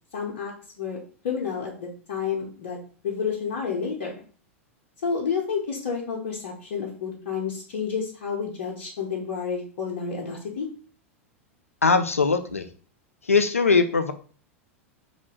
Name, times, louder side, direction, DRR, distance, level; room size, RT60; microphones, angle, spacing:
voice 1, 0.1-1.0 1.2-2.8 3.0-4.1 5.0-10.7, left 6 dB, 65° left, -1 dB, 0.9 m, -30 dB
voice 2, 11.8-12.7 13.2-14.1, left 4 dB, 90° left, 9 dB, 0.4 m, -20 dB
3.1 x 2.5 x 4.3 m, 0.40 s
figure-of-eight pair, 90°, 7 cm